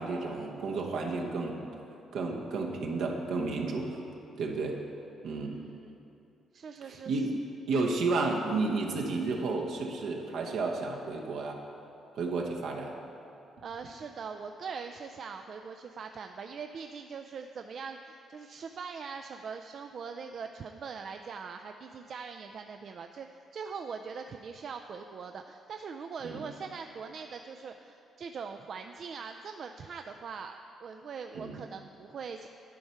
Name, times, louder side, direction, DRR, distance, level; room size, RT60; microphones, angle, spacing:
voice 1, 0.0-1.6 2.1-4.0 4.4-4.8 5.2-5.6 6.9-7.4 7.7-11.6 12.1-12.9 26.2-26.4 31.3-31.6, right 3 dB, 75° right, 0 dB, 1.0 m, -32 dB
voice 2, 5.3-5.9 6.5-7.2 13.6-23.3 23.5-32.5, right 5 dB, 55° right, 5 dB, 0.3 m, -42 dB
11.5 x 4.5 x 5.6 m, 2.7 s
cardioid pair, 90°, 0 cm